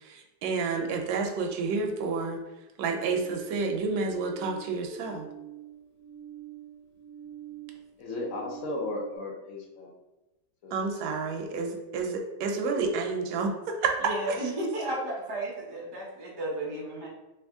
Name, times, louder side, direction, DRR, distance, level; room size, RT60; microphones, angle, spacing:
voice 1, 0.0-2.4 2.8-5.3 10.7-13.9 14.3-14.4, right 4 dB, 70° right, 2 dB, 1.1 m, -30 dB
sound 1, 3.0-9.2, right 11 dB, 85° left, 1.4 m, -46 dB
voice 2, 8.0-9.9 10.6-10.7, left 2 dB, 60° left, -1 dB, 1.0 m, -35 dB
voice 3, 14.0-17.1, right 1 dB, 40° right, -3 dB, 0.3 m, -33 dB
3.4 x 2.9 x 3.5 m, 1.1 s
omnidirectional pair, 1.9 m